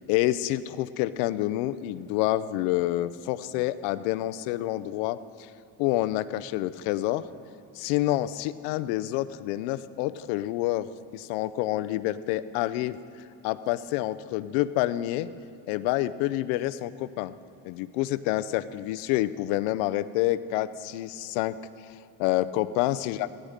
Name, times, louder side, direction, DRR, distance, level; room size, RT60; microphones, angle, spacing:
voice 1, 0.0-5.5 5.8-7.2 7.7-10.9 11.1-13.0 13.4-15.3 15.7-17.3 17.6-21.6 22.2-23.2, left 15 dB, 85° left, 14 dB, 0.7 m, -28 dB
16.5 x 16.0 x 5.1 m, 2.5 s
cardioid pair, 110°, 47 cm